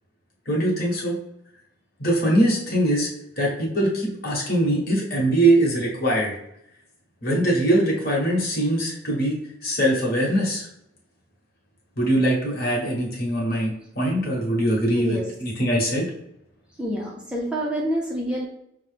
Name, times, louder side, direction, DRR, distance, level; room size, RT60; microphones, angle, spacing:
voice 1, 0.5-1.1 2.0-3.1 3.4-6.3 7.2-9.4 9.6-10.7 12.0-16.1, right 1 dB, 50° left, -3 dB, 1.2 m, -22 dB
voice 2, 14.9-15.2 16.8-18.5, right 1 dB, 5° right, -3 dB, 0.4 m, -27 dB
5.8 x 2.0 x 3.2 m, 0.80 s
head